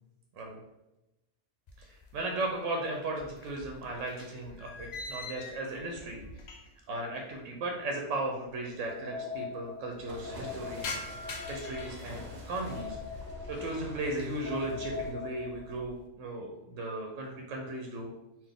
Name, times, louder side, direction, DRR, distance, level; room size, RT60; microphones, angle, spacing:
sound 1, 1.7-2.5 2.8-6.9 7.2-7.3 8.2-8.3 8.4-8.5 8.8-9.3 9.7-12.9 13.3-13.9 14.3-14.7 15.1-16.0, left 3 dB, 60° left, 0.4 m, -45 dB
voice 1, 1.8-6.5 6.9-13.0 13.5-18.1, right 2 dB, 85° right, 1 dB, 0.9 m, -36 dB
sound 2, 8.8-15.8, left 5 dB, 45° left, 0.8 m, -42 dB
sound 3, 10.1-15.1, left 2 dB, 60° right, 1.0 m, -45 dB
3.9 x 2.4 x 3.5 m, 0.97 s
omnidirectional pair, 1.3 m